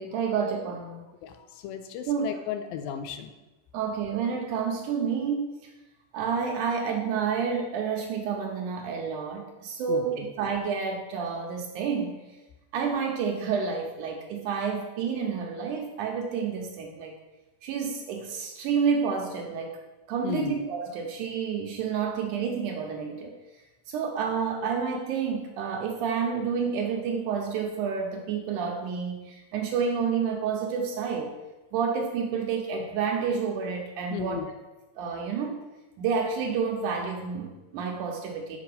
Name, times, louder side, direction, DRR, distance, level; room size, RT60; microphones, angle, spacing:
voice 1, 0.0-1.1 2.1-2.3 3.7-5.7 6.1-12.2 12.7-17.2 17.6-19.8 20.1-23.4 23.9-31.4 31.7-34.4 35.0-35.6 36.0-38.6, right 6 dB, 75° right, 2 dB, 1.9 m, -29 dB
voice 2, 1.2-3.3 9.9-10.3 20.2-20.5 34.1-34.5, left 9 dB, 90° left, 8 dB, 2.4 m, -35 dB
7.5 x 4.9 x 5.3 m, 1.1 s
omnidirectional pair, 4.1 m